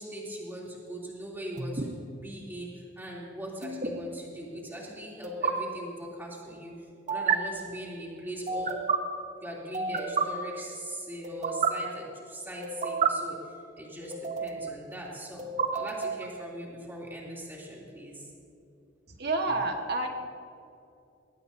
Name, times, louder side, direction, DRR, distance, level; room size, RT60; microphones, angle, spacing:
voice 1, 0.0-2.0 2.2-6.7 7.1-8.9 9.4-18.3 19.5-19.6, right 1 dB, 10° right, -4 dB, 3.2 m, -40 dB
sound 1, 1.6-1.9 3.6-3.9 5.2-5.5 7.1-7.4 8.5-9.0 9.7-10.2 11.2-11.7 12.6-13.1 14.1-14.7 15.4-16.3, right 6 dB, 40° right, 1.1 m, -29 dB
voice 2, 19.2-20.1, right 2 dB, 55° right, 3 dB, 1.7 m, -28 dB
21.0 x 18.0 x 2.8 m, 2.6 s
head